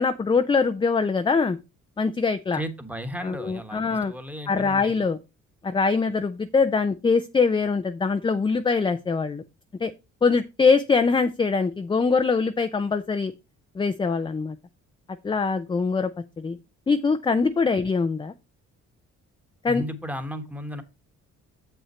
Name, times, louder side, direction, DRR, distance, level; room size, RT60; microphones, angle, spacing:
voice 1, 0.0-1.6 2.0-2.6 3.2-4.1 4.5-5.2 5.6-9.4 9.8-9.9 10.2-13.3 13.8-14.6 15.2-16.1 16.4-16.6 16.9-18.3 19.6-19.8, left 4 dB, 15° left, 9 dB, 0.4 m, -23 dB
voice 2, 2.5-4.9 19.7-20.8, equal, 5° right, 8 dB, 1.2 m, -34 dB
7.1 x 5.7 x 4.3 m, 0.27 s
cardioid pair, 90°, 30 cm